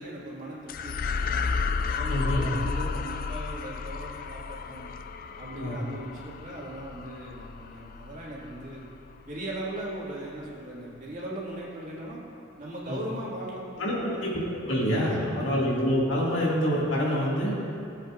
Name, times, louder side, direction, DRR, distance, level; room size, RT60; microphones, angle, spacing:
voice 1, 0.0-1.5 1.9-4.9 5.4-8.9 9.3-12.2 12.6-14.3 14.9-15.7, right 1 dB, 40° right, -6 dB, 2.1 m, -39 dB
sound 1, 0.7-9.3, left 5 dB, 45° left, 0.4 m, -33 dB
voice 2, 2.1-2.5 5.6-5.8 12.9-13.0 13.8-13.9 14.2-17.6, equal, 70° left, -5 dB, 2.2 m, -26 dB
16.5 x 7.9 x 2.5 m, 2.9 s
head